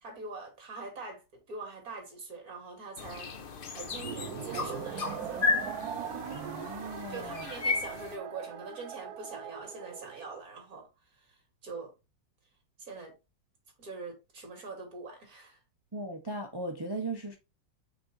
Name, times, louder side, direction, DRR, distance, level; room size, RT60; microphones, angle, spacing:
voice 1, 0.0-3.3 3.7-5.4 7.1-10.9 11.2-11.4 11.6-11.9 12.8-13.1 13.8-15.6, right 3 dB, 45° right, 2.8 m, -43 dB
sound 1, 3.0-8.2, left 4 dB, 90° left, 0.4 m, -34 dB
sound 2, 3.9-10.4, right 9 dB, 65° right, 1.0 m, -41 dB
voice 2, 6.3-7.5 15.9-17.4, right 2 dB, 25° right, 0.5 m, -38 dB
5.6 x 4.5 x 4.1 m
omnidirectional pair, 2.1 m